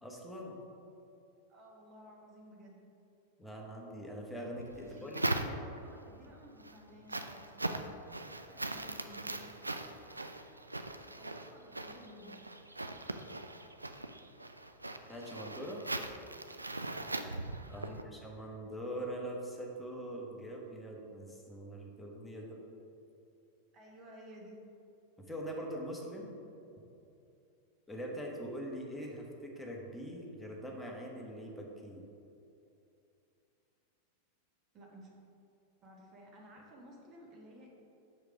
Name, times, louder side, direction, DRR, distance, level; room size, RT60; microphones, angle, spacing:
voice 1, 0.0-0.6 3.4-5.2 15.1-15.8 17.7-22.6 25.2-26.3 27.9-32.0, equal, 5° left, -2 dB, 1.1 m, -43 dB
voice 2, 1.5-2.8 4.8-7.8 8.5-9.5 11.2-12.4 17.7-18.1 22.3-22.5 23.7-24.6 34.7-35.1 35.8-37.7, equal, 30° right, -2 dB, 1.3 m, -54 dB
sound 1, 4.5-6.0 6.4-18.0, right 2 dB, 85° right, 0.3 m, -40 dB
6.3 x 5.0 x 4.8 m, 2.7 s
figure-of-eight pair, 90°, 0 cm